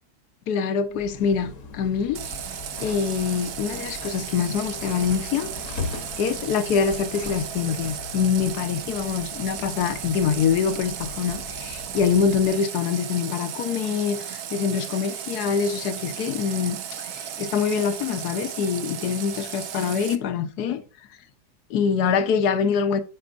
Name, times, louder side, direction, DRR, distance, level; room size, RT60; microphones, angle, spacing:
voice 1, 0.5-2.4 2.8-5.9 6.2-20.8 21.7-23.0, left 6 dB, 75° left, 1.4 m, -25 dB
sound 1, 0.9-12.6, left 4 dB, 55° left, 1.3 m, -40 dB
Water tap faucet, 2.1-20.2, right 9 dB, 70° right, 1.3 m, -35 dB
10.5 x 7.1 x 2.5 m
omnidirectional pair, 1.7 m